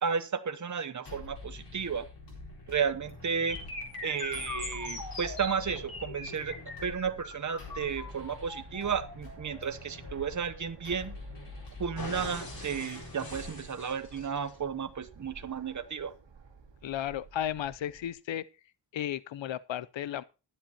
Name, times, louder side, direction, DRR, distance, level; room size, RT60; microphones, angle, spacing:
voice 1, 0.0-2.1 2.7-3.6 4.0-6.6 6.8-11.1 11.8-16.1, right 6 dB, 40° right, 0.8 m, -33 dB
sound 1, 1.0-14.1, left 3 dB, 70° left, 4.3 m, -47 dB
Fixed-wing aircraft airplane, 3.0-18.1, right 4 dB, 80° right, 2.3 m, -53 dB
sound 2, 3.5-11.5 12.0-14.5, left 2 dB, 50° left, 4.4 m, -42 dB
voice 2, 16.8-18.5 18.9-20.2, left 11 dB, 90° left, 0.6 m, -34 dB
20.0 x 7.9 x 2.9 m
wide cardioid pair, 120°, 44 cm